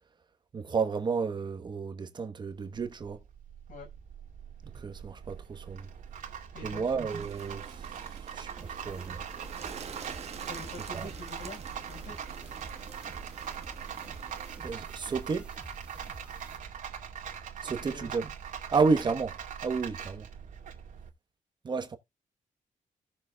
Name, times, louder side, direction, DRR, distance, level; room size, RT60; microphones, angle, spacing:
voice 1, 0.5-3.2 4.6-5.9 6.6-9.2 10.9-11.1 14.6-15.5 17.6-18.3 18.7-20.3 21.6-22.0, right 4 dB, 35° right, 1.1 m, -31 dB
Rattle, 2.5-21.1, right 8 dB, 75° right, 2.2 m, -42 dB
voice 2, 6.5-6.9 10.5-11.6 11.9-12.3 17.6-18.1, left 2 dB, 80° left, 5.7 m, -45 dB
Bird, 7.1-14.6, right 7 dB, 50° right, 1.3 m, -47 dB
sound 1, 8.6-16.6, right 1 dB, 10° right, 1.1 m, -50 dB
17.0 x 6.9 x 2.4 m
wide cardioid pair, 170°, 14 cm